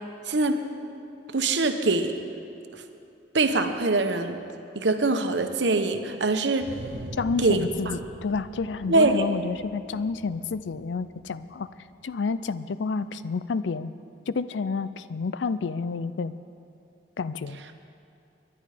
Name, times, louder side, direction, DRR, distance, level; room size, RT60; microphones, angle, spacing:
voice 1, 0.3-0.6 1.3-2.2 3.3-4.4 4.7-6.7 7.4-7.9 8.9-9.2, right 3 dB, 80° right, 7 dB, 1.0 m, -23 dB
sound 1, 6.6-12.1, right 2 dB, 65° right, 0.6 m, -43 dB
voice 2, 7.2-11.7 12.0-13.9 14.3-16.3 17.2-17.6, left 4 dB, 90° left, 14 dB, 0.5 m, -29 dB
22.0 x 11.0 x 5.0 m, 2.7 s
head